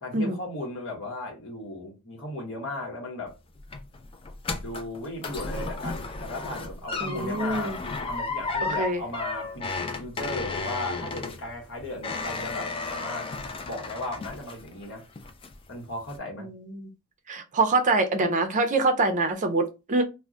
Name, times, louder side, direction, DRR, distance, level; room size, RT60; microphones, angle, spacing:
voice 1, 0.0-3.3 4.6-7.8 8.1-9.7 10.0-13.3 13.6-15.1 15.7-16.5, left 1 dB, 65° left, 1.0 m, -36 dB
sound 1, 3.3-14.8 15.2-15.7 16.1-16.2, left 3 dB, 25° left, 0.3 m, -34 dB
voice 2, 7.0-7.8 8.6-9.0 16.4-16.9 17.3-20.0, right 3 dB, 35° right, 0.5 m, -25 dB
2.2 x 2.1 x 3.7 m
head